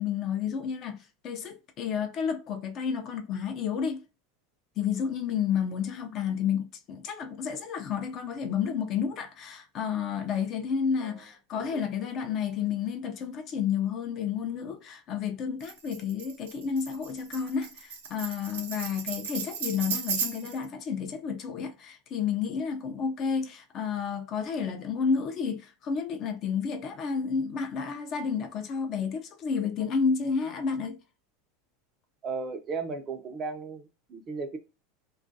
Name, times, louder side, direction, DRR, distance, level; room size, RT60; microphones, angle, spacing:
voice 1, 0.0-4.0 4.8-31.0, left 6 dB, 40° left, 0.4 m, -31 dB
voice 2, 11.5-12.3 32.2-34.6, right 4 dB, 30° right, 0.5 m, -36 dB
Tambourine, 15.6-20.6, right 6 dB, 90° right, 0.6 m, -35 dB
2.3 x 2.2 x 2.6 m
supercardioid pair, 125°, 0 cm